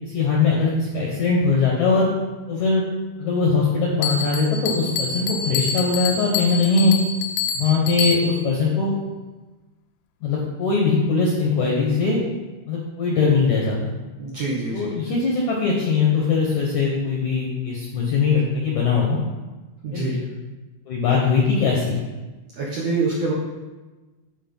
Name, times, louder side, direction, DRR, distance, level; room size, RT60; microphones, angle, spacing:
voice 1, 0.0-2.1 2.5-2.8 3.2-6.9 7.5-8.9 10.2-12.2 12.7-13.9 14.7-19.2 19.9-20.2 20.9-22.0, left 4 dB, 70° left, -3 dB, 1.8 m, -21 dB
Bell, 4.0-8.5, left 5 dB, 85° left, 2.7 m, -27 dB
voice 2, 14.2-14.9 19.8-20.2 22.6-23.3, right 3 dB, 75° right, -5 dB, 1.5 m, -25 dB
8.3 x 4.8 x 5.4 m, 1.2 s
omnidirectional pair, 4.7 m